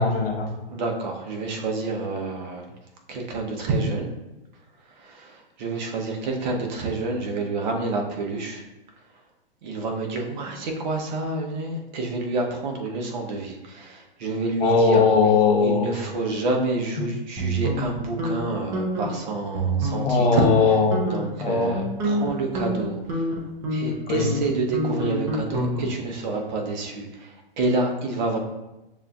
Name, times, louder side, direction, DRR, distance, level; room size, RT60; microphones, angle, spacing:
voice 1, 0.0-0.5 14.6-15.9 20.0-21.0 21.4-21.7 24.1-24.3, left 4 dB, 80° left, -1 dB, 1.1 m, -19 dB
voice 2, 0.7-2.7 3.1-4.1 5.0-8.6 9.6-15.1 15.6-20.5 21.1-23.3 23.7-28.4, right 3 dB, 50° right, 1 dB, 0.9 m, -28 dB
sound 1, 17.4-18.4 18.7-19.1 19.5-20.1 20.4-20.6 20.9-21.3 21.7-26.1, right 1 dB, 10° right, 0.3 m, -27 dB
6.7 x 2.6 x 2.3 m, 0.98 s
hypercardioid pair, 140°, 29 cm